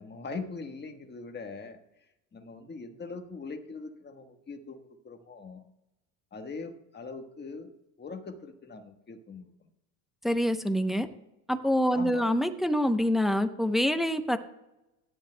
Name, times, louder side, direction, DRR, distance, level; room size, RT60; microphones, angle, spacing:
voice 1, 0.0-1.8 2.3-5.6 6.3-9.4 11.9-12.3, left 4 dB, 25° left, 6 dB, 1.3 m, -41 dB
voice 2, 10.2-11.1 11.5-14.4, equal, ahead, 8 dB, 0.7 m, -26 dB
17.0 x 11.0 x 2.2 m, 0.92 s
supercardioid pair, 115°, 44 cm